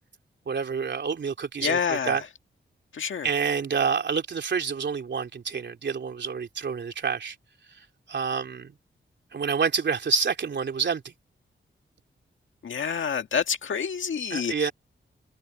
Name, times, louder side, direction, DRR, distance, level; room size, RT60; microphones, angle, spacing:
voice 1, 0.5-2.2 3.2-7.3 7.7-8.7 9.3-11.1 14.3-14.7, right 5 dB, 60° right, 3.2 m, -28 dB
voice 2, 1.6-2.2 2.9-3.3 12.6-14.7, left 7 dB, 75° left, 1.8 m, -28 dB
wide cardioid pair, 120°, 20 cm